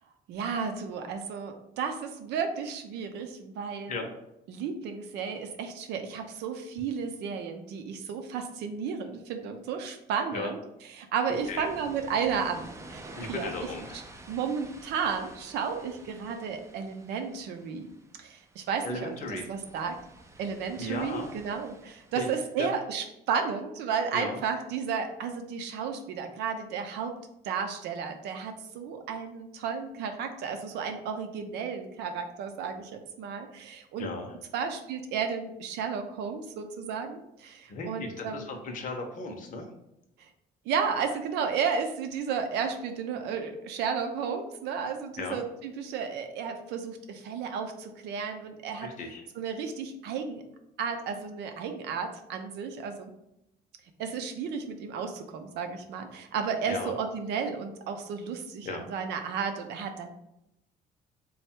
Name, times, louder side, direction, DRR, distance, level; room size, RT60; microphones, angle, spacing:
voice 1, 0.3-4.0 4.5-10.6 11.0-13.7 13.9-14.0 14.3-17.9 18.2-20.0 20.4-27.1 27.4-34.1 34.5-38.5 40.7-48.9 49.4-50.4 50.8-53.1 54.0-60.1, right 6 dB, 80° right, 6 dB, 0.6 m, -33 dB
voice 2, 11.3-11.7 13.2-14.0 18.8-19.5 20.8-21.3 22.1-22.3 22.6-22.7 24.1-24.4 34.0-34.3 37.7-39.7 45.2-45.4 48.8-49.2 56.7-56.9 58.6-58.9, left 3 dB, 50° left, 3 dB, 0.7 m, -36 dB
sound 1, 11.3-22.5, right 2 dB, 15° right, 0.4 m, -50 dB
3.3 x 2.3 x 4.4 m, 0.84 s
cardioid pair, 110°, 17 cm